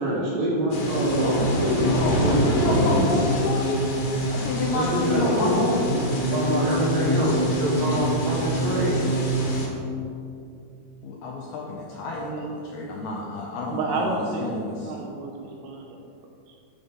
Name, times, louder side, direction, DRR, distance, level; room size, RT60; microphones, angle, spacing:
voice 1, 0.0-1.9 2.2-3.1 4.7-5.8 6.3-9.0, right 1 dB, 60° right, -4 dB, 2.7 m, -25 dB
sound 1, 0.7-9.7, equal, 65° left, 3.1 m, -25 dB
voice 2, 1.9-3.8 4.3-6.2 11.0-15.0, left 2 dB, 80° left, -2 dB, 2.3 m, -30 dB
voice 3, 12.1-13.0 13.7-14.5 14.9-16.0, right 3 dB, 80° right, 1 dB, 2.6 m, -31 dB
12.0 x 5.4 x 5.5 m, 2.5 s
omnidirectional pair, 5.4 m